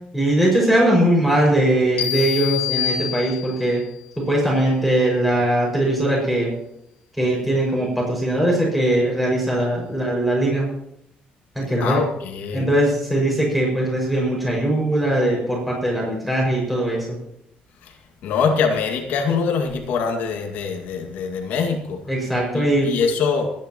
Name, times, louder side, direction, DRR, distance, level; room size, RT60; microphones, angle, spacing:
voice 1, 0.1-3.8 4.2-6.5 7.2-10.7 11.5-12.0 12.5-17.2 22.1-22.9, right 1 dB, ahead, -4 dB, 6.0 m, -20 dB
sound 1, 2.0-3.8, left 10 dB, 55° left, 2.5 m, -26 dB
voice 2, 11.8-12.7 17.8-18.0 18.2-22.0 22.5-23.5, left 5 dB, 75° left, 2 dB, 2.1 m, -23 dB
27.5 x 10.0 x 3.1 m, 0.80 s
cardioid pair, 145°, 3 cm